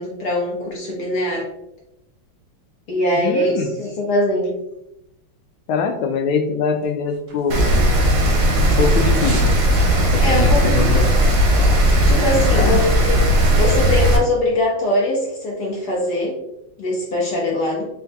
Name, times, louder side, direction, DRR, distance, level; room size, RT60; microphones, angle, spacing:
voice 1, 0.0-1.5 2.9-4.6 10.2-11.0 12.1-13.2 13.5-16.4 16.8-17.9, left 1 dB, 55° left, -3 dB, 1.3 m, -22 dB
voice 2, 3.1-3.7 5.7-7.8 8.6-9.4 10.0-11.0 12.5-12.9, left 5 dB, 80° left, 6 dB, 1.4 m, -23 dB
sound 1, 6.8-8.0 8.3-9.6 9.9-10.0, right 2 dB, 50° right, 1.5 m, -36 dB
Rain, 7.5-14.2, equal, 80° right, 1.7 m, -16 dB
4.6 x 4.1 x 2.2 m, 0.87 s
omnidirectional pair, 2.3 m